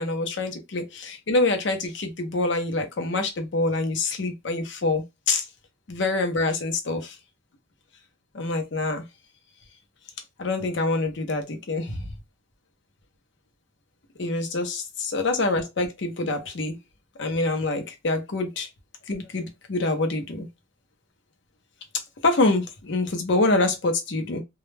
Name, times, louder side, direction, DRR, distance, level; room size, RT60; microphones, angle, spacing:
voice 1, 0.0-5.4 5.9-7.2 8.3-9.0 10.4-12.0 14.2-16.8 17.2-18.7 19.1-20.5 21.9-24.4, left 2 dB, 60° left, 0.6 m, -26 dB
2.2 x 2.1 x 3.2 m
head